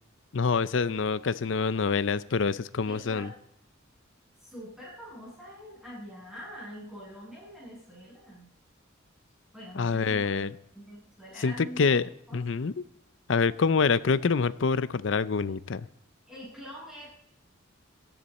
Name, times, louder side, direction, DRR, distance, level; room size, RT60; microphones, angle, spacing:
voice 1, 0.3-3.3 9.8-10.5 11.4-12.0 12.3-12.8 13.3-15.9, left 5 dB, 65° left, 0.5 m, -26 dB
voice 2, 2.8-3.3 4.4-8.5 9.5-12.0 12.3-12.4 16.3-17.1, equal, 5° right, 7.6 m, -44 dB
18.5 x 13.0 x 4.2 m
head